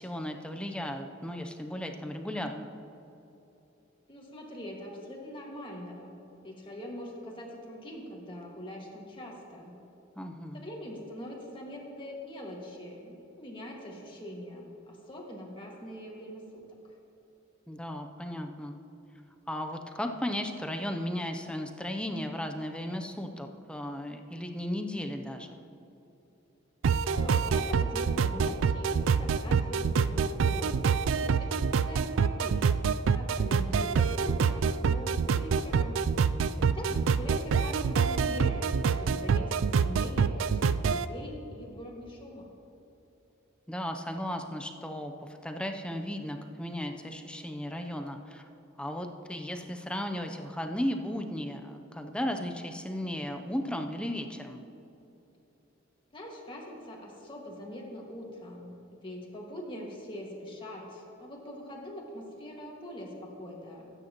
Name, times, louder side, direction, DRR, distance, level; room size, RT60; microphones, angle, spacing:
voice 1, 0.0-2.7 10.2-10.6 17.7-18.8 19.5-25.6 36.4-37.1 43.7-45.1 45.4-48.4 48.8-54.6, left 1 dB, 5° left, 4 dB, 0.6 m, -35 dB
voice 2, 4.1-6.2 6.4-9.8 10.5-16.4 16.7-16.8 27.0-30.7 31.1-32.7 33.1-36.0 36.7-42.5 56.1-63.9, equal, 25° left, -2 dB, 1.8 m, -42 dB
sound 1, 26.8-41.1, right 5 dB, 70° right, 0.3 m, -26 dB
20.5 x 9.2 x 3.0 m, 3.0 s
head